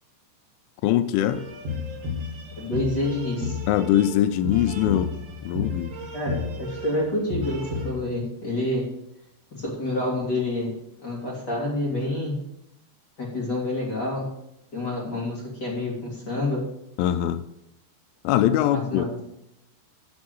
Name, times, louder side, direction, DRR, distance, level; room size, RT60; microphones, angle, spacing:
voice 1, 0.8-1.5 3.7-5.1 5.4-5.9 17.0-17.4 18.2-19.1, left 12 dB, 90° left, 11 dB, 3.0 m, -22 dB
sound 1, 1.3-7.9, left 3 dB, 60° right, 1.7 m, -32 dB
voice 2, 2.5-3.6 6.1-8.9 9.5-10.7 11.0-12.3 13.2-14.3 14.7-16.6 18.7-19.2, left 2 dB, 30° left, -4 dB, 2.1 m, -28 dB
8.5 x 6.2 x 7.6 m, 0.82 s
omnidirectional pair, 5.4 m